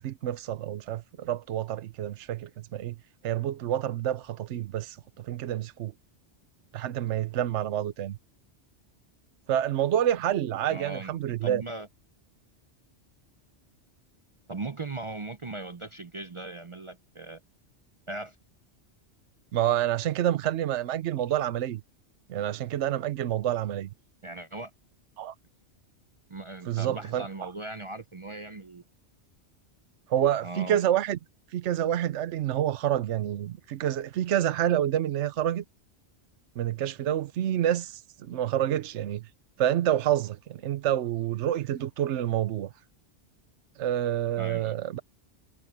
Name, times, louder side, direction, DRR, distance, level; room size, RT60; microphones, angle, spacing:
voice 1, 0.0-3.0 3.2-5.9 6.7-8.2 9.5-11.6 19.5-21.8 22.3-23.9 25.2-25.3 26.7-27.5 30.1-31.2 31.5-35.6 36.6-39.2 39.6-42.7 43.8-45.0, right 11 dB, 80° right, 1.0 m, -28 dB
voice 2, 10.7-11.9 14.5-17.4 18.1-18.4 24.2-24.7 26.3-28.8 30.4-30.8 44.4-44.7, right 2 dB, 40° right, 0.5 m, -38 dB
omnidirectional pair, 1.2 m